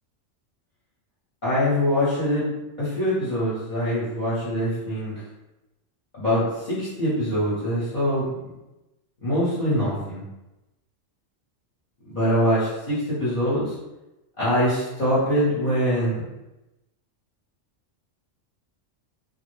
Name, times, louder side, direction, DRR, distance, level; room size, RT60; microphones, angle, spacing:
voice 1, 1.4-2.4 2.8-5.1 6.2-8.5 9.2-10.2 12.0-13.7 14.4-16.2, equal, 40° left, -10 dB, 0.9 m, -23 dB
2.2 x 2.0 x 3.1 m, 0.98 s
omnidirectional pair, 1.3 m